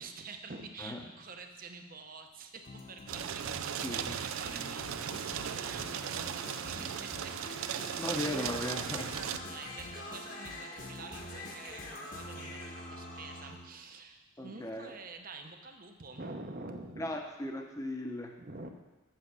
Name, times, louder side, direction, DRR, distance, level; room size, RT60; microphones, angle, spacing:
voice 1, 0.0-7.8 8.2-8.5 9.5-17.1 18.4-18.7, right 3 dB, 40° right, 5 dB, 0.8 m, -47 dB
sound 1, 2.6-13.7, left 1 dB, 40° left, 1.1 m, -45 dB
sound 2, 3.1-9.4, right 9 dB, 80° right, 0.4 m, -37 dB
voice 2, 3.8-4.2 6.7-6.9 8.0-9.2 14.4-14.9 17.0-18.4 18.6-18.7, left 1 dB, 15° left, 3 dB, 0.8 m, -37 dB
7.5 x 7.0 x 6.9 m, 1.2 s
head